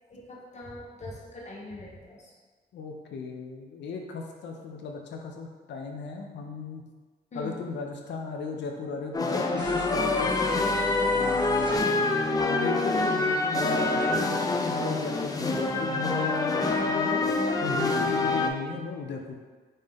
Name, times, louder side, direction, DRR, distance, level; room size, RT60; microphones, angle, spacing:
voice 1, 0.1-2.3 7.3-7.6 11.7-12.0 18.3-18.5, left 2 dB, 40° left, -3 dB, 0.9 m, -41 dB
voice 2, 2.7-6.9 7.3-10.7 11.1-17.2 17.6-19.4, left 4 dB, 80° left, 2 dB, 0.6 m, -36 dB
sound 1, 9.1-18.5, left 3 dB, 20° left, 0.4 m, -26 dB
sound 2, 9.6-11.8, equal, 25° right, 1.2 m, -39 dB
5.3 x 2.7 x 3.5 m, 1.4 s
cardioid pair, 105°, 18 cm